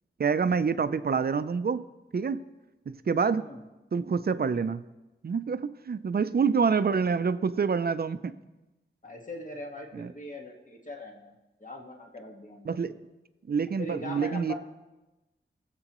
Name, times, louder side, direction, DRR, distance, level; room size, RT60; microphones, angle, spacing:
voice 1, 0.2-1.8 2.1-2.4 2.9-3.4 3.9-4.8 5.2-8.3 9.9-10.1 12.7-12.9 13.5-14.5, right 5 dB, 50° right, 12 dB, 0.5 m, -27 dB
voice 2, 9.0-12.8 13.8-14.5, left 1 dB, 40° left, 1 dB, 1.6 m, -41 dB
22.5 x 7.6 x 3.1 m, 1.1 s
wide cardioid pair, 90°, 20 cm